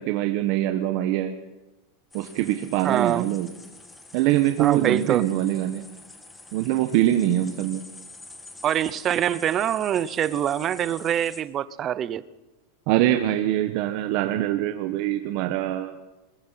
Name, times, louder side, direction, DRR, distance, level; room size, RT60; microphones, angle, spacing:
voice 1, 0.0-1.3 2.1-3.5 4.1-5.8 6.5-7.8 12.9-15.9, right 13 dB, 45° right, 7 dB, 1.2 m, -23 dB
sound 1, 2.1-11.4, left 2 dB, 10° left, 1.7 m, -46 dB
voice 2, 2.8-3.3 4.6-5.3 8.6-12.2, right 10 dB, 25° right, 17 dB, 0.7 m, -24 dB
22.5 x 21.0 x 5.8 m, 1.1 s
supercardioid pair, 160°, 0 cm